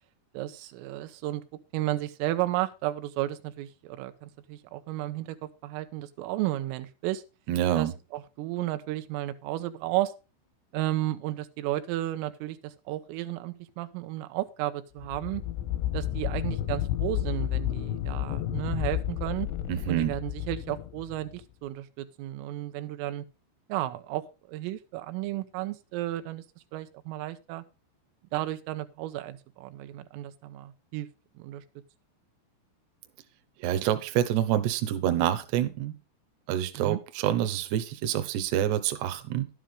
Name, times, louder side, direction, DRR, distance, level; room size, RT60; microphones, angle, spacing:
voice 1, 0.3-1.4 1.7-7.2 7.8-10.1 10.7-15.4 15.9-19.5 19.9-23.2 23.7-26.4 26.7-27.6 28.3-31.1 31.4-31.6 36.8-37.0, right 15 dB, 85° right, 10 dB, 3.4 m, -33 dB
voice 2, 7.5-7.9 19.7-20.1 33.6-36.0 36.5-39.5, right 11 dB, 70° right, 10 dB, 2.8 m, -27 dB
sound 1, 15.0-21.4, left 13 dB, 80° left, 3.1 m, -31 dB
11.5 x 9.9 x 3.6 m, 0.30 s
omnidirectional pair, 5.8 m